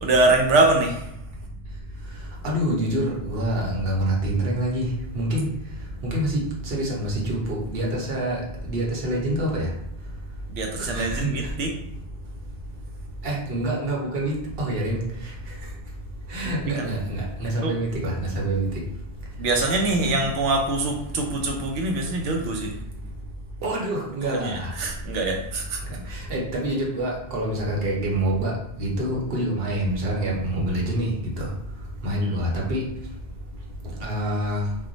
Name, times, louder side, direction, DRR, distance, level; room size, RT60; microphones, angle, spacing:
voice 1, 0.0-1.1 10.5-11.7 16.4-17.0 17.6-17.7 19.4-22.8 24.3-25.8 32.1-32.4, right 2 dB, 90° right, 2 dB, 0.9 m, -24 dB
voice 2, 2.4-4.9 5.1-5.5 6.1-9.7 10.8-11.3 13.2-15.0 16.3-18.7 23.6-24.7 26.1-28.5 28.8-31.1 31.4-31.5 32.0-32.8 34.0-34.6, right 1 dB, 60° right, -2 dB, 1.0 m, -26 dB
2.4 x 2.2 x 3.8 m, 0.77 s
omnidirectional pair, 1.2 m